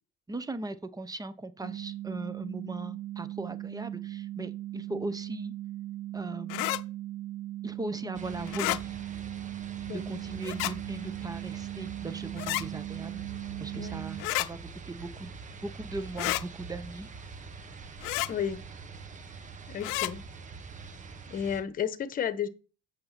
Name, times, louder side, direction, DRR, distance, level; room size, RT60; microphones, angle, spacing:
voice 1, 0.3-5.5 6.1-6.7 7.6-9.0 9.9-13.2 13.6-14.6 14.9-15.4 15.6-17.1, right 2 dB, 20° right, 1.0 m, -38 dB
sound 1, 1.6-14.2, right 14 dB, 75° right, 0.9 m, -39 dB
sound 2, 6.5-6.8 8.5-8.8 10.4-10.7 12.4-12.6 14.2-14.5 16.2-16.4 18.0-18.3 19.8-20.1, left 20 dB, 85° left, 0.6 m, -30 dB
sound 3, 8.1-21.6, right 5 dB, 40° right, 1.5 m, -44 dB
voice 2, 18.3-18.6 19.7-20.2 21.3-22.5, left 8 dB, 45° left, 1.2 m, -32 dB
8.6 x 6.8 x 4.3 m
supercardioid pair, 85°, 20 cm